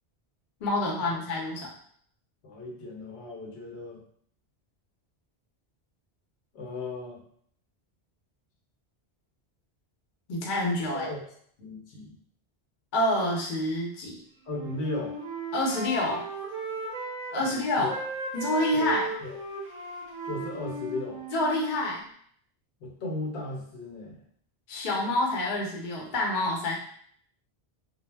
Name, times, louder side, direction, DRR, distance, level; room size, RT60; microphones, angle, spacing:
voice 1, 0.6-1.7 10.3-11.1 12.9-14.2 15.5-16.2 17.3-17.9 18.3-19.1 21.3-22.0 24.7-26.7, left 1 dB, 50° left, -2 dB, 0.7 m, -27 dB
voice 2, 2.4-4.0 6.5-7.2 10.9-11.2 11.6-12.1 14.4-15.2 17.4-18.0 18.7-19.4 20.2-21.2 22.8-24.2, left 2 dB, 80° left, -1 dB, 0.9 m, -36 dB
Wind instrument woodwind instrument, 14.5-17.6 17.9-21.6, right 3 dB, 45° right, 0.5 m, -36 dB
2.0 x 2.0 x 3.2 m, 0.62 s
omnidirectional pair, 1.1 m